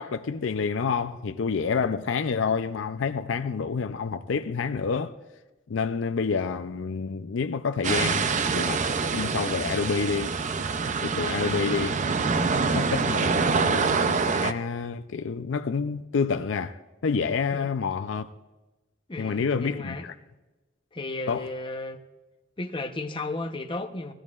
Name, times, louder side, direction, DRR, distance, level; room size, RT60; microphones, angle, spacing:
voice 1, 0.0-5.1 5.7-8.8 9.1-10.3 11.0-12.0 12.6-18.3 19.2-20.1 21.3-21.5, left 5 dB, 75° left, 0.5 m, -28 dB
sound 1, 7.8-14.5, right 4 dB, 40° right, 0.5 m, -25 dB
voice 2, 19.1-20.1 20.9-22.0 22.6-24.1, left 2 dB, 25° left, 0.8 m, -34 dB
20.0 x 14.5 x 2.4 m
head